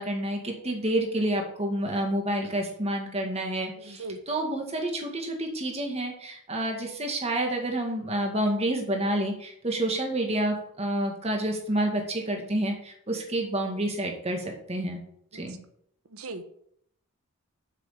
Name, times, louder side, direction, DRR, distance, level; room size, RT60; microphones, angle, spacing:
voice 1, 0.0-15.0 15.3-15.6, right 1 dB, 30° right, 2 dB, 2.0 m, -29 dB
voice 2, 3.8-4.2 15.3-15.6 16.1-16.4, right 3 dB, 75° right, 10 dB, 1.1 m, -39 dB
7.5 x 6.3 x 7.4 m, 0.68 s
head